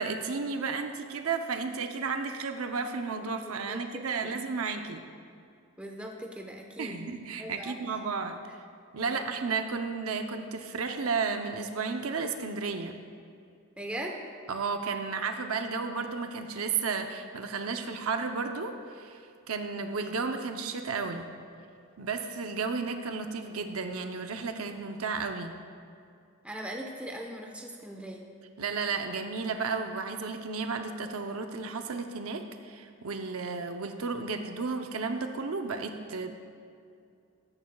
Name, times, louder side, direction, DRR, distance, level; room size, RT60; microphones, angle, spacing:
voice 1, 0.0-5.0 6.8-8.4 8.9-13.0 14.5-19.2 19.5-21.3 22.0-25.6 28.6-36.3, right 4 dB, 75° right, 5 dB, 0.7 m, -33 dB
voice 2, 3.4-3.8 4.2-4.4 5.8-7.0 7.4-7.9 9.1-9.2 13.8-14.2 26.4-28.3 36.1-36.3, right 1 dB, 5° right, 1 dB, 0.9 m, -40 dB
14.0 x 13.5 x 2.3 m, 2.5 s
head